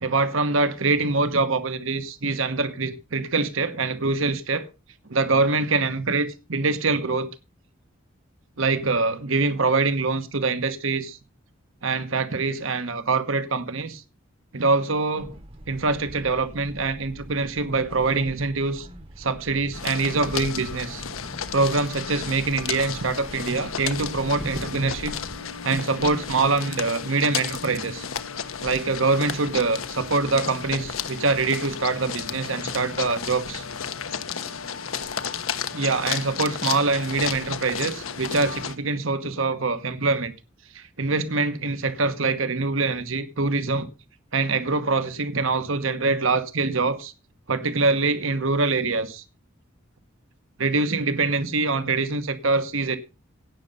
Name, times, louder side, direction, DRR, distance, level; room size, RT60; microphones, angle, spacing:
voice 1, 0.0-4.7 5.1-7.3 8.6-11.2 11.8-14.0 14.5-15.3 15.7-18.9 19.2-21.0 21.5-25.2 25.6-28.1 28.6-33.6 35.7-40.3 40.7-43.9 44.3-47.1 47.5-49.2 50.6-53.0, right 3 dB, 75° right, 1.2 m, -24 dB
sound 1, 15.2-25.4, right 1 dB, 25° right, 1.0 m, -42 dB
sound 2, 19.7-38.8, left 7 dB, 90° left, 1.2 m, -33 dB
17.0 x 6.7 x 5.3 m
head